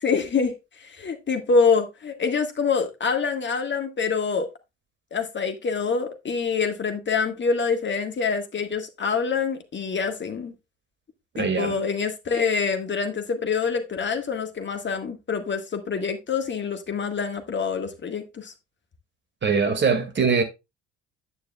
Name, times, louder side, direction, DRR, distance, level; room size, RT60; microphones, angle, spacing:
voice 1, 0.0-4.5 5.1-10.5 11.4-18.5, left 5 dB, 30° left, 1.7 m, -26 dB
voice 2, 11.3-11.8 19.4-20.4, right 5 dB, 30° right, 2.2 m, -22 dB
9.7 x 9.3 x 2.3 m
figure-of-eight pair, 55°, 35 cm